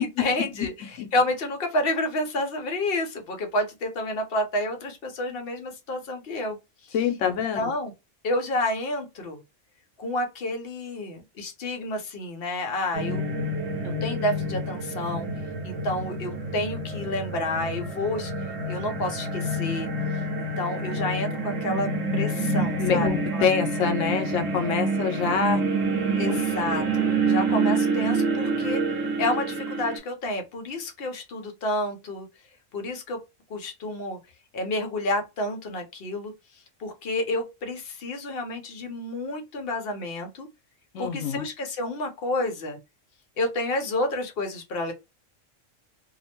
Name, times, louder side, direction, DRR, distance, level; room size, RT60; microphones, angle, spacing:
voice 1, 0.0-6.6 6.8-6.9 7.5-7.9 8.2-9.4 10.0-13.3 13.8-15.3 15.6-19.9 20.4-23.5 26.2-28.8 29.2-32.3 32.7-33.2 33.5-34.2 34.5-36.3 36.8-40.5 41.0-42.8 43.4-44.9, left 1 dB, 55° left, 0.8 m, -30 dB
voice 2, 6.9-7.7 22.8-25.6 26.2-26.4 40.9-41.5, left 6 dB, 85° left, 1.0 m, -26 dB
sound 1, 12.9-30.0, right 2 dB, 85° right, 1.2 m, -27 dB
2.8 x 2.0 x 2.8 m
omnidirectional pair, 1.3 m